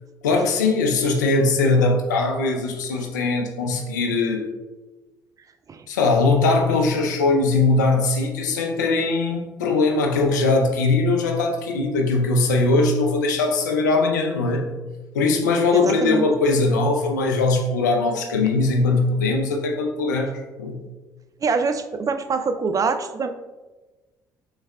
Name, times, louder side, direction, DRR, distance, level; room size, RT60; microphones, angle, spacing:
voice 1, 0.2-4.5 5.9-14.7 15.1-20.9, left 3 dB, 90° left, 2 dB, 0.5 m, -20 dB
voice 2, 15.7-16.2 21.4-23.3, right 4 dB, 40° right, 9 dB, 0.4 m, -24 dB
5.6 x 3.4 x 2.2 m, 1.2 s
hypercardioid pair, 55°, 9 cm